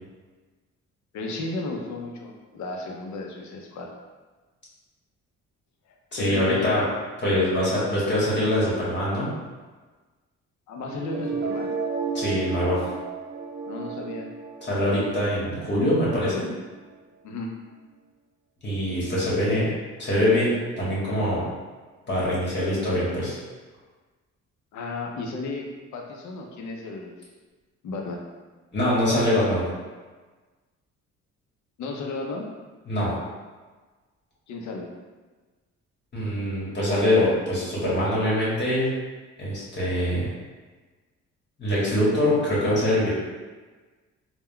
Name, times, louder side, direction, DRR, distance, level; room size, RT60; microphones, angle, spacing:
voice 1, 1.1-3.9 6.2-6.9 10.7-11.7 13.7-14.3 17.2-17.5 24.7-25.7 25.9-27.2 27.8-28.2 31.8-32.5 34.5-34.9, left 3 dB, 70° left, 1 dB, 0.6 m, -33 dB
voice 2, 6.1-6.8 7.2-9.3 12.1-12.8 14.7-16.5 18.6-19.7 20.0-21.5 22.1-23.4 28.7-29.6 32.9-33.1 36.1-38.9 39.4-40.3 41.6-43.1, left 1 dB, 35° left, -7 dB, 1.2 m, -23 dB
sound 1, 10.9-16.9, right 5 dB, 75° right, 0.5 m, -33 dB
3.5 x 2.2 x 2.2 m, 1.3 s
cardioid pair, 90°, 30 cm